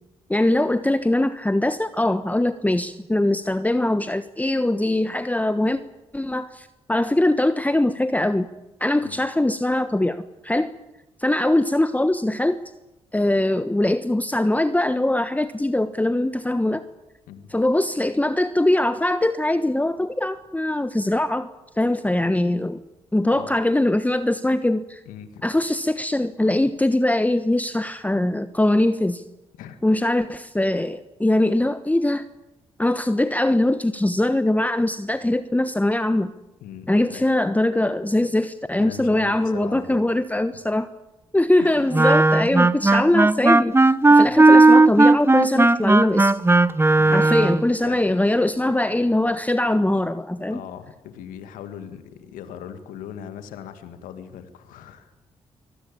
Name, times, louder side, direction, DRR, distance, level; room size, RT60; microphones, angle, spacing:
voice 1, 0.3-5.8 6.1-8.5 8.8-10.7 11.2-12.6 13.1-16.8 17.5-21.5 21.8-22.8 23.1-25.0 25.4-29.2 29.8-32.2 32.8-36.3 36.9-40.9 41.3-43.8 44.1-46.4 47.1-50.6, left 1 dB, 10° left, 12 dB, 1.2 m, -22 dB
voice 2, 25.1-25.5 29.6-29.8 36.6-37.3 38.8-40.0 41.6-41.9 44.2-44.4 47.0-47.3 47.8-48.2 50.5-55.1, left 9 dB, 80° left, 9 dB, 2.0 m, -39 dB
Wind instrument woodwind instrument, 41.9-47.7, right 2 dB, 15° right, 1.0 m, -15 dB
24.5 x 19.0 x 8.7 m, 0.97 s
hypercardioid pair, 45°, 14 cm